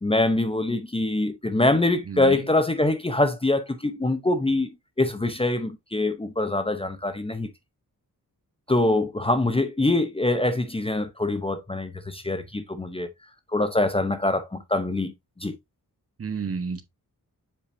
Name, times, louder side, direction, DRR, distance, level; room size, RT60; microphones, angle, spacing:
voice 1, 0.0-4.7 5.0-7.5 8.7-13.1 13.5-15.1 15.4-15.5, left 2 dB, 15° left, 0.7 m, -24 dB
voice 2, 2.1-2.5 16.2-16.8, right 5 dB, 40° right, 1.0 m, -31 dB
7.5 x 5.0 x 2.6 m
wide cardioid pair, 135°, 36 cm